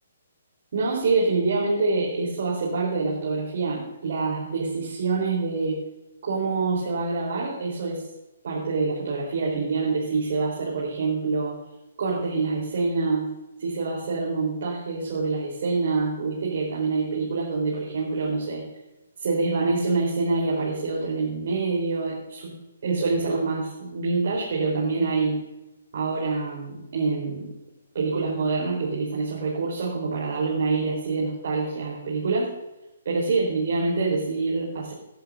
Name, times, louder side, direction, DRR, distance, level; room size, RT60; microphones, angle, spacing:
voice 1, 0.7-5.8 6.2-8.0 8.4-11.5 12.0-13.3 13.6-18.6 19.2-22.5 22.8-25.4 25.9-27.5 27.9-32.5 33.0-34.9, right 3 dB, 55° right, -5 dB, 4.1 m, -26 dB
18.5 x 11.5 x 2.7 m, 0.98 s
figure-of-eight pair, 130°, 0 cm